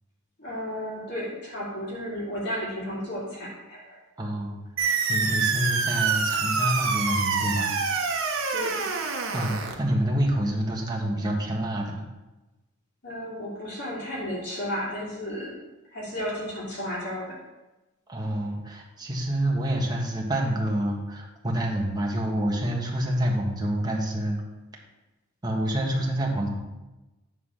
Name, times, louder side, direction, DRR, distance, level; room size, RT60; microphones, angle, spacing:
voice 1, 0.4-4.0 8.5-8.8 13.0-15.6 15.9-17.4, equal, 60° left, -6 dB, 2.6 m, -33 dB
voice 2, 4.2-4.6 5.1-7.7 9.3-12.0 18.1-24.4 25.4-26.5, right 1 dB, 20° right, -1 dB, 1.5 m, -27 dB
sound 1, 4.8-9.8, right 4 dB, 75° right, 1.1 m, -26 dB
9.4 x 4.0 x 6.5 m, 1.1 s
head